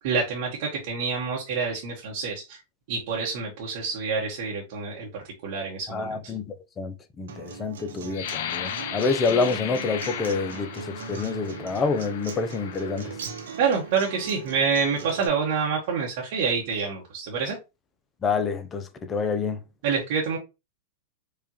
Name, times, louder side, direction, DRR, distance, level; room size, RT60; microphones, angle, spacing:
voice 1, 0.0-2.6 2.9-5.1 5.4-6.2 13.6-17.6 19.8-20.4, right 5 dB, 60° right, 1.1 m, -27 dB
voice 2, 5.9-13.1 18.2-19.6, left 4 dB, 25° left, 0.6 m, -27 dB
Acoustic guitar, 7.3-15.3, right 5 dB, 75° right, 0.8 m, -39 dB
sound 1, 8.1-13.8 14.4-14.6 15.1-15.5, left 10 dB, 65° left, 0.5 m, -36 dB
4.8 x 2.5 x 2.9 m
hypercardioid pair, 105°, 0 cm